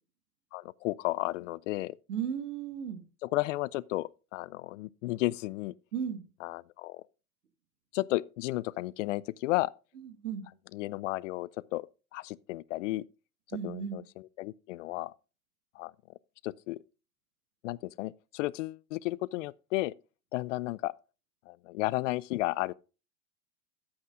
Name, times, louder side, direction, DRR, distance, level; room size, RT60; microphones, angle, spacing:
voice 1, 0.5-2.0 3.2-5.7 6.4-7.0 7.9-9.7 10.7-11.9 12.1-13.0 13.6-15.1 15.8-15.9 16.4-16.8 17.6-19.9 20.3-20.9 21.5-22.7, left 19 dB, 55° left, 0.5 m, -33 dB
voice 2, 2.1-3.0 5.9-6.2 10.2-10.5 13.5-14.0, right 8 dB, 85° right, 1.9 m, -34 dB
13.5 x 8.7 x 2.5 m
hypercardioid pair, 115°, 46 cm